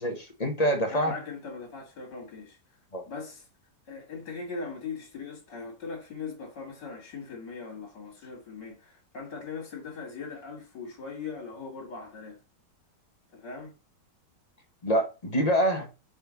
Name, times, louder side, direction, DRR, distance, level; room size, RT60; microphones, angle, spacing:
voice 1, 0.0-1.1 2.9-3.0 14.8-15.9, equal, 25° left, 1.1 m, -26 dB
voice 2, 0.9-2.6 3.1-3.5 3.9-12.4 13.3-13.7, left 4 dB, 75° left, 2.6 m, -40 dB
6.6 x 4.4 x 4.0 m
omnidirectional pair, 1.9 m